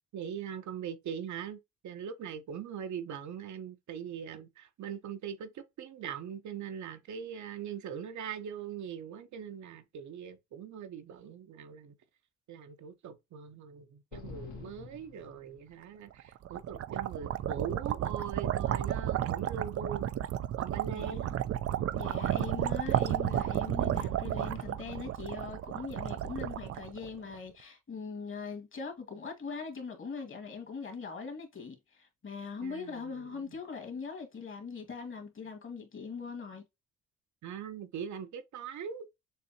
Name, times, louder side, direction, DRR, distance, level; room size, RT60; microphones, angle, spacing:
voice 1, 0.1-11.9 12.5-20.1 20.6-21.3 32.6-33.6 37.4-39.1, right 7 dB, 70° right, 1.0 m, -41 dB
sound 1, 14.1-16.0, left 5 dB, 85° left, 1.9 m, -47 dB
sound 2, 16.2-27.4, right 11 dB, 50° right, 0.5 m, -32 dB
voice 2, 20.9-21.3 21.9-36.6, left 5 dB, 40° left, 1.9 m, -41 dB
6.8 x 2.8 x 2.8 m
cardioid pair, 90°, 30 cm